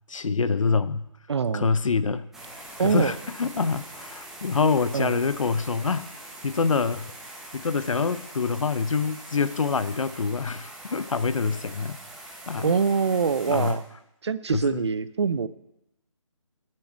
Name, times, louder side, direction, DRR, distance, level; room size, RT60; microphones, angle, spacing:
voice 1, 0.1-1.0 1.5-2.3 2.8-6.1 6.4-7.1 7.5-12.0 12.5-12.7 13.5-13.8 14.5-14.9, left 5 dB, 75° left, 15 dB, 0.7 m, -26 dB
voice 2, 1.3-1.7 2.8-3.1 4.9-5.1 12.6-13.8 14.2-15.5, right 5 dB, 55° right, 15 dB, 0.6 m, -24 dB
sound 1, 2.3-13.7, right 1 dB, ahead, 0.7 m, -43 dB
9.3 x 7.7 x 8.3 m, 0.87 s
figure-of-eight pair, 160°, 17 cm